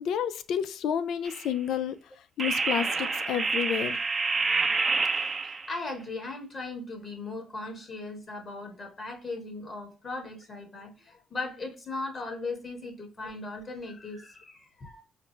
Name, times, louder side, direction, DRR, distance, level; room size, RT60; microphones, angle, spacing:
voice 1, 0.0-2.0 2.4-4.0, left 9 dB, 80° left, 0.4 m, -30 dB
sound 1, 1.2-1.5 2.4-5.8, right 4 dB, 30° right, 0.6 m, -28 dB
voice 2, 5.4-15.0, left 3 dB, 40° left, 1.6 m, -38 dB
5.0 x 2.1 x 3.2 m
cardioid pair, 90°, 0 cm